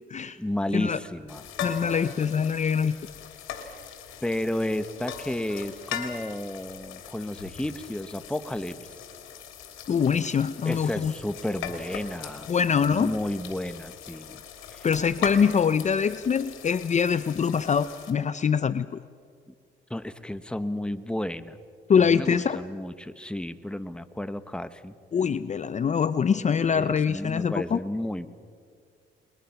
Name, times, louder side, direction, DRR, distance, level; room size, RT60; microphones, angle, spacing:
voice 1, 0.4-1.4 4.2-8.8 10.6-12.5 12.8-14.4 14.7-14.8 19.5-19.6 19.9-21.6 22.0-24.9 26.7-28.3, left 1 dB, 5° left, 11 dB, 1.2 m, -32 dB
sound 1, 1.3-18.1, left 8 dB, 90° left, 3.1 m, -40 dB
voice 2, 1.6-3.0 9.9-11.1 12.5-13.1 14.8-18.9 21.9-22.6 25.1-27.8, left 6 dB, 35° left, 14 dB, 0.6 m, -24 dB
30.0 x 22.0 x 5.9 m, 2.1 s
cardioid pair, 90°, 20 cm